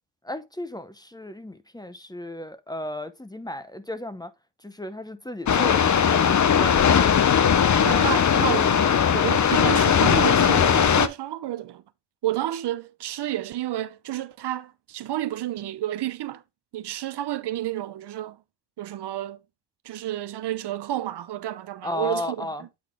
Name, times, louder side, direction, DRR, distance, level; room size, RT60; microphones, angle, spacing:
voice 1, 0.2-4.3 4.6-7.4 21.8-22.7, left 1 dB, 10° left, 0.8 m, -34 dB
sound 1, 5.5-11.1, left 8 dB, 45° left, 0.7 m, -19 dB
voice 2, 7.8-11.8 12.2-16.4 16.7-18.4 18.8-19.4 19.8-22.5, right 13 dB, 80° right, 0.7 m, -30 dB
8.6 x 4.1 x 3.5 m
cardioid pair, 80°, 40 cm